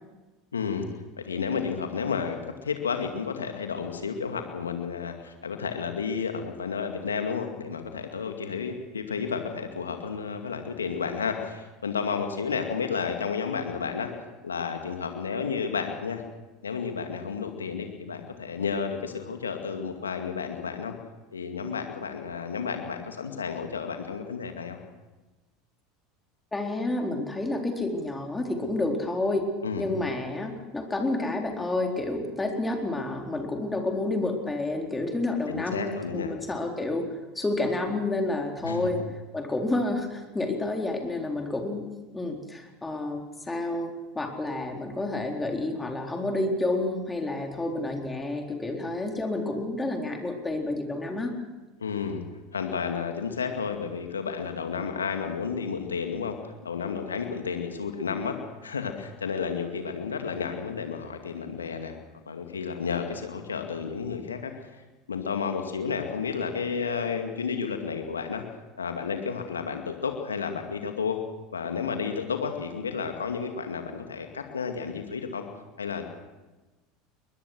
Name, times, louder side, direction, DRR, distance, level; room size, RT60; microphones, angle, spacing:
voice 1, 0.5-0.9 1.2-14.1 14.4-16.2 16.6-20.9 21.3-24.8 29.6-29.9 35.5-36.3 38.6-39.0 51.8-52.2 52.5-56.4 56.6-58.3 58.6-61.9 62.3-64.6 65.1-68.4 68.8-71.2 71.5-75.5 75.8-76.1, left 6 dB, 85° left, 5 dB, 2.3 m, -31 dB
voice 2, 26.5-29.5 29.8-39.0 39.3-41.9 42.1-51.3, left 2 dB, 15° left, 2 dB, 4.1 m, -29 dB
22.5 x 20.5 x 6.3 m, 1.2 s
figure-of-eight pair, 75°, 0 cm